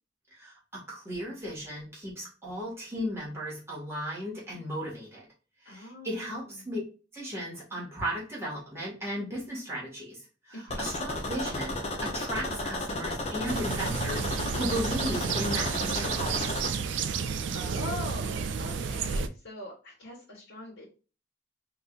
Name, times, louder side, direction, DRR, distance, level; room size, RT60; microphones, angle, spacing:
voice 1, 0.3-5.2 5.6-6.8 7.1-16.5, equal, 15° right, -5 dB, 1.7 m, -36 dB
voice 2, 5.6-6.7 10.5-10.9 17.5-20.9, left 2 dB, 80° left, -5 dB, 1.3 m, -42 dB
sound 1, 10.7-16.7, left 1 dB, 35° left, 0.6 m, -33 dB
sound 2, 13.5-19.3, right 6 dB, 80° right, 0.4 m, -31 dB
3.8 x 2.6 x 2.5 m, 0.34 s
head